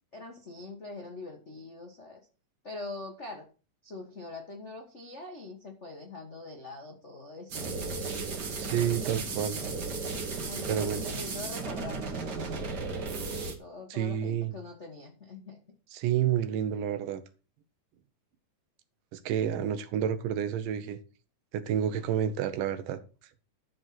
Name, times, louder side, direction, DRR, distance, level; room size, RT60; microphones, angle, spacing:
voice 1, 0.1-2.2 2.6-3.5 3.8-7.8 10.5-12.0 13.6-15.6, left 3 dB, 65° left, 0.7 m, -43 dB
sound 1, 7.5-13.5, right 4 dB, 45° right, 1.5 m, -35 dB
voice 2, 8.6-9.6 10.7-11.0 13.9-14.5 15.9-17.2 19.1-21.0 21.5-23.0, right 9 dB, 80° right, 2.5 m, -29 dB
12.5 x 4.5 x 5.9 m
omnidirectional pair, 3.8 m